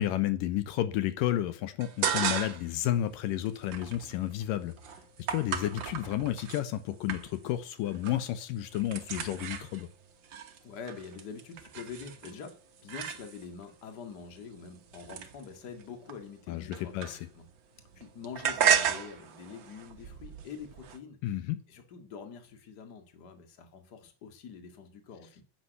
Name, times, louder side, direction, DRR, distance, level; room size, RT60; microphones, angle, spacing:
voice 1, 0.0-4.7 5.3-9.9 16.5-17.2 21.2-21.6, left 13 dB, 80° left, 11 dB, 2.5 m, -31 dB
sound 1, 1.8-2.8 3.1-6.6 7.1-7.6 7.9-8.3 8.6-13.6 14.3-17.5 17.8-21.0, right 8 dB, 80° right, 1.0 m, -34 dB
voice 2, 10.6-17.5 17.9-21.4 21.7-25.4, left 6 dB, 35° left, 6 dB, 2.0 m, -45 dB
10.5 x 8.9 x 8.1 m, 0.40 s
omnidirectional pair, 4.0 m